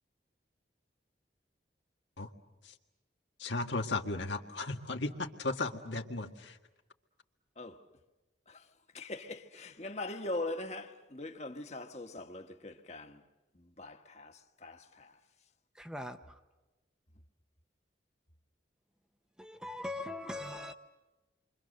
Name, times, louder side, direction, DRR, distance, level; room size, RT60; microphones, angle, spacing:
voice 1, 3.4-6.6, left 3 dB, 85° left, 1.9 m, -35 dB
voice 2, 8.9-13.2 13.5-15.1, left 2 dB, 35° left, 1.4 m, -41 dB
voice 3, 15.8-16.2 19.4-20.7, left 1 dB, 5° right, 0.8 m, -40 dB
29.0 x 24.5 x 6.6 m
head